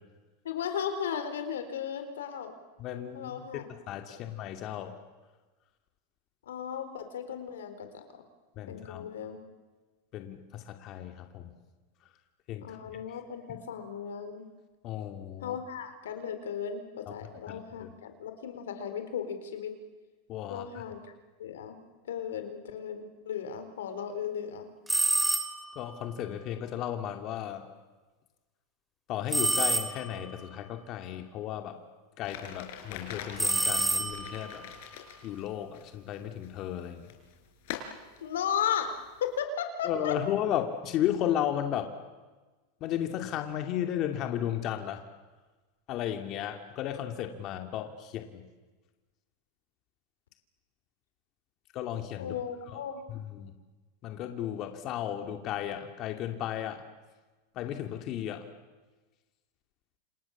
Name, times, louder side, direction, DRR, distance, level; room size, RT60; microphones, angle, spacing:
voice 1, 0.4-2.5 3.1-3.6 6.5-8.0 8.7-9.4 12.6-14.5 15.4-19.7 20.5-21.1 21.4-21.8 22.1-24.7 38.2-38.9 39.2-40.2 52.2-53.0, left 8 dB, 90° left, 8 dB, 4.2 m, -35 dB
voice 2, 2.8-5.0 8.6-9.1 10.1-11.6 12.5-13.2 13.5-13.6 14.8-15.6 17.1-17.2 17.5-17.9 20.3-20.8 25.7-27.7 29.1-31.8 32.2-34.6 35.2-37.1 39.8-41.9 42.8-45.0 45.9-48.4 51.7-52.3 52.6-52.8 53.1-53.5 54.0-56.8 57.5-58.5, left 11 dB, 45° left, 5 dB, 2.5 m, -34 dB
sound 1, 24.9-25.8 29.3-30.3 33.4-34.5, right 2 dB, 5° right, 2.5 m, -28 dB
sound 2, 32.2-39.4, left 9 dB, 65° left, 5.3 m, -45 dB
29.5 x 27.5 x 7.3 m, 1.3 s
supercardioid pair, 120°, 0 cm